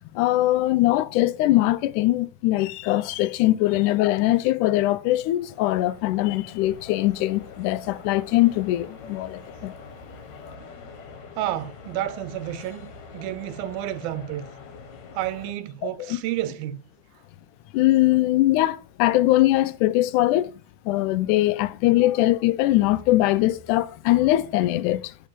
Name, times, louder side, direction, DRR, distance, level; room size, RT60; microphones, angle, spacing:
voice 1, 0.1-9.7 15.8-16.2 17.7-20.5 20.9-25.1, left 16 dB, 80° left, 1.8 m, -21 dB
sound 1, 4.8-15.5, left 4 dB, 60° left, 2.3 m, -44 dB
voice 2, 11.4-14.5 15.1-16.8, right 13 dB, 85° right, 2.6 m, -30 dB
10.5 x 4.7 x 7.3 m
omnidirectional pair, 4.2 m